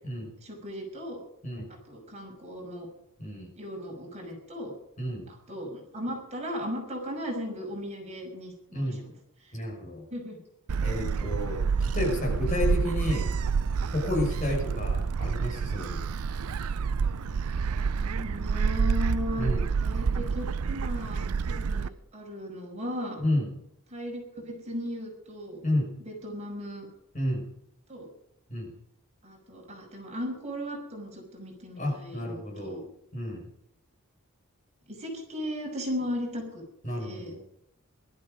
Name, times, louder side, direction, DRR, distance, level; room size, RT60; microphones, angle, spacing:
voice 1, 0.4-1.2 1.9-2.9 3.6-4.7 5.3-9.1 9.4-9.5 10.1-10.4 17.9-19.5 19.8-23.2 23.9-25.6 26.0-26.9 27.9-28.1 29.2-32.8 34.9-36.6 37.0-37.3, equal, 30° right, 0 dB, 5.9 m, -37 dB
voice 2, 9.5-10.0 10.8-13.3 13.9-16.0 19.4-19.6 23.2-23.5 25.6-25.9 27.1-27.4 28.5-28.7 31.8-32.9 33.1-33.4 36.8-37.4, left 1 dB, 35° left, 0 dB, 5.9 m, -31 dB
Gull seagull, 10.7-21.9, right 5 dB, 85° right, 0.5 m, -28 dB
19.5 x 13.0 x 5.2 m, 0.77 s
head